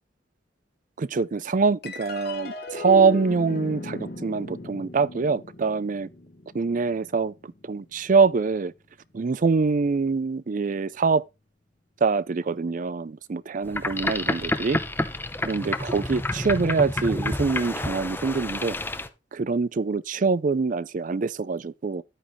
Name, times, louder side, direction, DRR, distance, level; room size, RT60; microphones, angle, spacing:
voice 1, 1.0-6.1 6.5-8.7 9.1-11.3 12.0-14.8 15.4-18.8 19.3-22.0, right 4 dB, 45° right, 0.4 m, -24 dB
sound 1, 1.8-8.5, left 3 dB, 55° left, 1.6 m, -37 dB
Boat Water vehicle, 13.6-19.1, left 1 dB, 10° left, 0.7 m, -29 dB
11.0 x 8.8 x 3.1 m
head